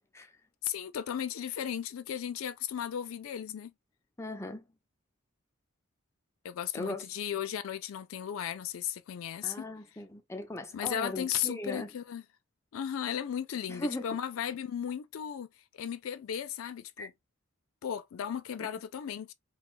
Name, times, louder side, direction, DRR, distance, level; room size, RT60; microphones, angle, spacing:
voice 1, 0.6-3.7 6.4-9.6 10.7-12.2 12.7-15.5 15.7-17.1 17.8-19.3, left 9 dB, 75° left, 0.4 m, -35 dB
voice 2, 4.2-4.6 6.7-7.0 9.4-11.9 13.7-14.1 17.0-17.1 18.6-18.7, left 1 dB, 15° left, 0.5 m, -38 dB
3.0 x 2.3 x 2.4 m
head